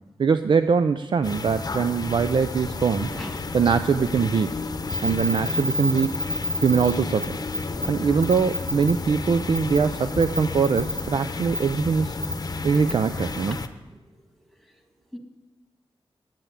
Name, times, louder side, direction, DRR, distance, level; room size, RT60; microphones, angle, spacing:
voice 1, 0.2-3.1 3.5-4.6 5.0-6.1 6.6-7.4 7.8-12.2 12.6-13.6, right 6 dB, 55° right, 10 dB, 0.4 m, -22 dB
sound 1, 1.2-13.7, left 3 dB, 40° left, 0.8 m, -32 dB
voice 2, 2.9-3.4 13.1-13.5 15.1-15.2, equal, ahead, 4 dB, 1.8 m, -38 dB
sound 2, 4.9-6.9 7.2-7.3 7.5-7.9 8.2-8.9 9.6-9.8 10.2-11.0 11.5-11.6 12.2-12.3 12.7-12.9, left 2 dB, 35° right, 1.7 m, -28 dB
10.0 x 9.0 x 9.6 m, 1.2 s
wide cardioid pair, 90°, 10 cm